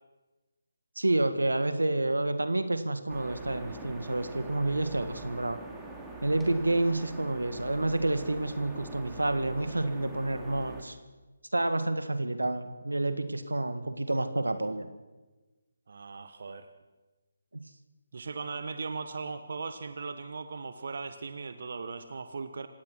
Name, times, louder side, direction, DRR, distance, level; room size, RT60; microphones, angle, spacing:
voice 1, 1.0-5.6 6.2-11.0 11.5-14.9, right 2 dB, 85° right, 10 dB, 1.8 m, -29 dB
sound 1, 3.1-10.8, right 2 dB, 10° right, 2.6 m, -44 dB
voice 2, 15.9-16.7 18.1-22.7, right 4 dB, 55° right, 9 dB, 1.3 m, -38 dB
26.5 x 17.0 x 6.3 m, 1.2 s
figure-of-eight pair, 150°, 0 cm